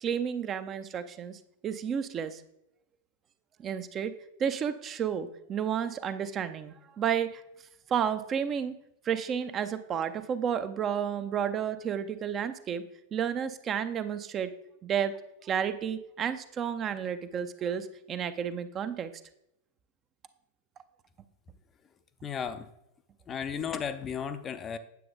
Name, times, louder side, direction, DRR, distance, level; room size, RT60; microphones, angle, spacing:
voice 1, 0.0-2.4 3.6-4.1 4.4-7.4 7.9-8.7 9.0-12.8 13.1-14.5 14.8-19.1, right 8 dB, 30° right, 11 dB, 0.6 m, -31 dB
voice 2, 22.2-22.7 23.3-24.8, left 7 dB, 25° left, 10 dB, 0.6 m, -34 dB
9.3 x 7.6 x 3.9 m, 0.81 s
figure-of-eight pair, 90°, 0 cm